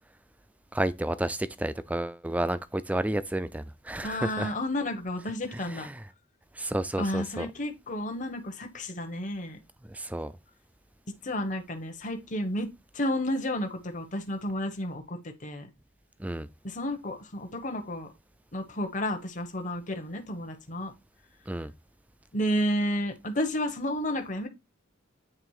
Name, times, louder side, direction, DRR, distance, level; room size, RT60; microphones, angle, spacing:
voice 1, 0.7-4.5 5.7-5.9 6.6-7.5 9.9-10.3 16.2-16.5 21.5-21.7, right 1 dB, 5° right, 0.4 m, -31 dB
voice 2, 4.0-5.9 7.0-9.6 11.1-12.7 12.9-15.7 16.6-18.1 18.5-20.9 22.3-24.5, left 1 dB, 40° left, 1.0 m, -31 dB
8.9 x 3.5 x 4.7 m
head